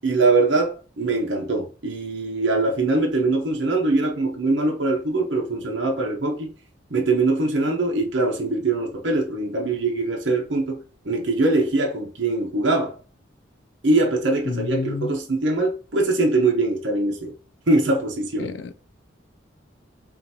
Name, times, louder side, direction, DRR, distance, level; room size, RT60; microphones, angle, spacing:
voice 1, 0.0-6.5 6.9-12.9 13.8-17.3 17.7-18.5, right 2 dB, 75° right, 0.8 m, -22 dB
voice 2, 14.5-15.1 18.4-18.7, left 4 dB, 65° left, 0.3 m, -29 dB
5.6 x 2.6 x 2.8 m
head